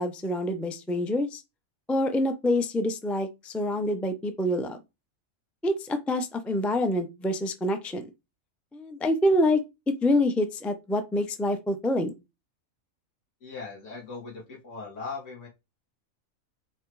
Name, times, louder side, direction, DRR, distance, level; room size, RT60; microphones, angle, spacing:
voice 1, 0.0-1.4 1.9-4.8 5.6-8.1 8.7-12.1, left 1 dB, ahead, 0.4 m, -26 dB
voice 2, 13.4-15.5, left 4 dB, 60° left, 2.7 m, -39 dB
7.7 x 3.2 x 4.7 m
omnidirectional pair, 1.4 m